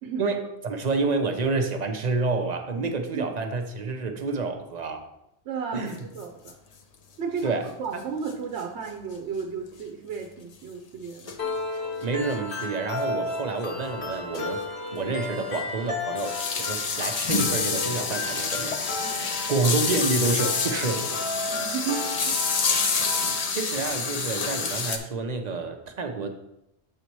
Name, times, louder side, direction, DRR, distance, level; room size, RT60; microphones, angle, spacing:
voice 1, 0.2-5.1 5.7-6.1 7.4-7.7 12.0-14.6 14.9-18.8 19.5-21.0 23.5-26.3, right 3 dB, 45° right, 5 dB, 0.7 m, -28 dB
voice 2, 2.8-3.3 5.4-6.6 7.2-11.3 19.0-19.2 21.5-22.4, right 6 dB, 85° right, 3 dB, 1.0 m, -34 dB
sound 1, 5.8-5.9 6.2-6.3 6.5-6.6 8.3-8.4 8.6-8.7 9.7-9.8 11.3-11.5 12.6-12.7 13.3-13.4 13.8-13.9 14.3-14.5 14.8-14.9 15.5-25.0, left 5 dB, 45° left, 0.6 m, -28 dB
sound 2, 11.4-23.4, left 3 dB, 70° left, 1.7 m, -34 dB
7.5 x 4.1 x 4.5 m, 0.83 s
omnidirectional pair, 1.1 m